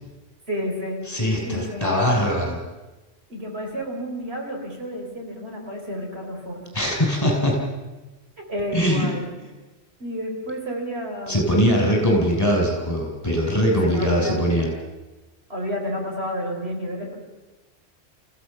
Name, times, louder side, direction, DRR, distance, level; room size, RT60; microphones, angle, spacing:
voice 1, 0.5-2.1 3.3-6.6 8.4-9.3 10.0-12.3 13.8-14.6 15.5-17.2, equal, 70° right, 1 dB, 4.8 m, -30 dB
voice 2, 1.1-2.6 6.7-7.6 8.7-9.1 11.3-14.7, equal, 20° left, -2 dB, 7.1 m, -21 dB
27.5 x 16.0 x 7.0 m, 1.1 s
omnidirectional pair, 1.1 m